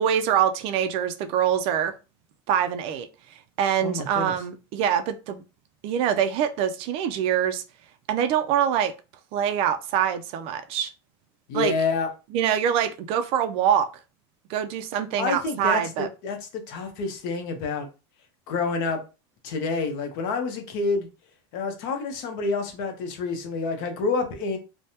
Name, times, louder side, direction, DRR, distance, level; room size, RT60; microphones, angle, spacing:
voice 1, 0.0-1.9 2.5-3.1 3.6-5.4 5.8-7.6 8.1-8.9 9.3-10.9 11.5-11.7 12.3-13.9 14.5-16.1, right 9 dB, 45° right, 0.4 m, -24 dB
voice 2, 3.8-4.3 11.5-12.1 15.2-15.8 16.2-17.9 18.5-19.0 19.4-21.1 21.5-24.6, left 4 dB, 60° left, 0.9 m, -28 dB
3.3 x 2.1 x 2.8 m
supercardioid pair, 155°, 13 cm